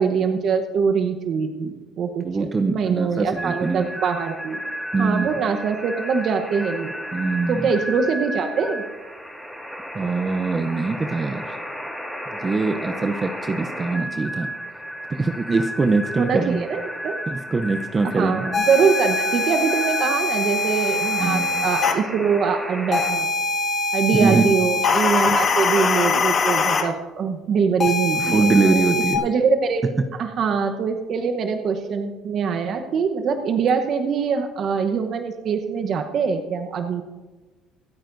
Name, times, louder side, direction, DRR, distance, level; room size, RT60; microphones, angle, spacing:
voice 1, 0.0-4.6 5.0-6.9 7.5-8.8 16.2-17.2 18.0-23.3 23.9-37.0, right 6 dB, 55° right, 7 dB, 1.0 m, -23 dB
voice 2, 2.2-3.9 4.9-5.4 7.1-7.7 9.9-11.6 12.4-14.5 15.1-16.6 17.3-18.4 21.2-21.7 24.1-24.4 25.3-25.4 28.1-29.2, right 3 dB, 25° right, 7 dB, 0.6 m, -23 dB
sound 1, 3.4-23.1, equal, ahead, 3.2 m, -33 dB
sound 2, 18.5-21.9 22.9-26.8 27.8-29.2, left 3 dB, 40° left, 1.9 m, -22 dB
25.0 x 9.0 x 2.6 m, 1.3 s
cardioid pair, 105°, 0 cm